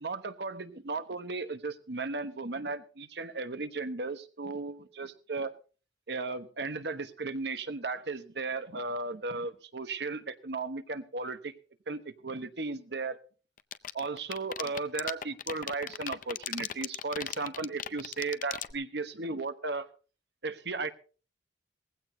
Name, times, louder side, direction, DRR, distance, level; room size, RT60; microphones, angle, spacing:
voice 1, 0.0-5.5 6.1-11.5 11.9-13.2 13.9-19.9 20.4-20.9, right 3 dB, 70° right, 10 dB, 1.1 m, -35 dB
sound 1, 13.6-18.7, left 9 dB, 50° left, 0.6 m, -36 dB
19.0 x 15.5 x 2.7 m, 0.37 s
head